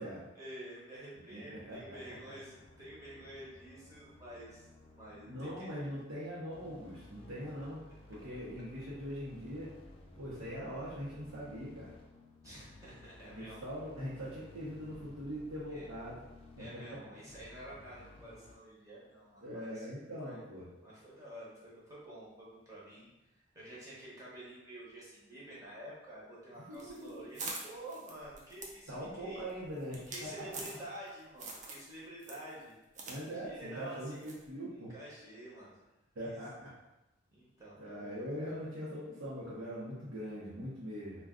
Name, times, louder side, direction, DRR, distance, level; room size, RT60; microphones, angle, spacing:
voice 1, 0.3-4.7 4.9-5.9 12.4-13.6 15.7-15.9 16.6-19.9 20.2-20.4 20.8-23.1 23.3-29.4 30.1-32.7 33.3-34.2 34.7-35.8 36.2-36.4 37.3-38.7, right 1 dB, 15° right, -8 dB, 0.8 m, -49 dB
voice 2, 1.3-2.0 5.3-7.8 8.1-9.7 10.1-11.9 13.3-16.2 16.6-17.0 19.4-20.7 26.7-27.1 28.9-30.3 33.1-34.9 36.1-36.7 37.8-41.2, equal, 85° right, -9 dB, 0.8 m, -42 dB
sound 1, 1.5-18.6, left 2 dB, 30° left, 0.3 m, -56 dB
sound 2, 26.7-31.1 31.4-31.9 32.2-33.2 33.5-33.6 34.2-34.5, right 3 dB, 40° right, 0.4 m, -45 dB
2.4 x 2.2 x 3.6 m, 0.98 s
head